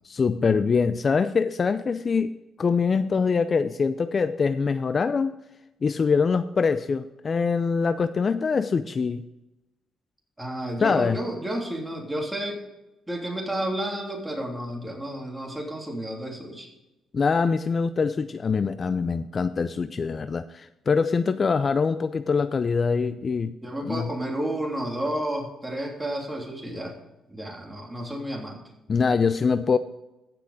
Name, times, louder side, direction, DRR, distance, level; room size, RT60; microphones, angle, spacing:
voice 1, 0.0-5.4 5.8-9.2 10.8-11.2 17.1-23.5 23.9-24.1 28.9-29.8, left 5 dB, 40° left, 12 dB, 0.4 m, -24 dB
voice 2, 10.4-12.6 13.1-16.7 23.6-26.9 27.3-28.6, right 1 dB, 10° right, 0 dB, 3.0 m, -31 dB
15.5 x 6.0 x 4.9 m, 0.97 s
cardioid pair, 90°, 0 cm